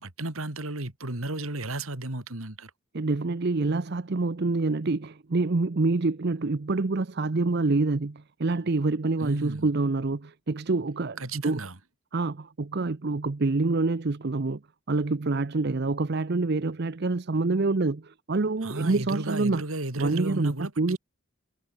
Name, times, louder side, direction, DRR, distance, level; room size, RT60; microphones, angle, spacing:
voice 1, 0.0-2.7 9.2-9.7 11.2-11.8 18.6-21.0, right 2 dB, 75° right, 2.9 m, -34 dB
voice 2, 2.9-11.6 12.1-14.6 14.9-19.6 20.0-21.0, right 3 dB, 50° right, 0.7 m, -26 dB
head